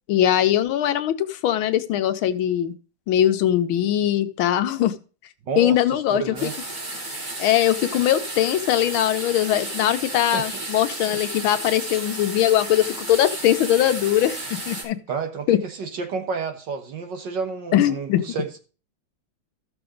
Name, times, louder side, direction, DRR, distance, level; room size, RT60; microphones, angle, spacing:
voice 1, 0.1-2.7 3.1-4.9 5.6-6.5 7.4-14.4 14.7-15.0 15.5-15.6 17.7-18.2, left 11 dB, 75° left, 10 dB, 1.5 m, -21 dB
voice 2, 5.4-6.5 10.3-10.6 15.1-18.6, right 5 dB, 60° right, 6 dB, 1.8 m, -30 dB
sound 1, 6.4-14.8, right 2 dB, 85° right, 4.2 m, -33 dB
14.0 x 6.0 x 3.8 m, 0.36 s
omnidirectional pair, 2.3 m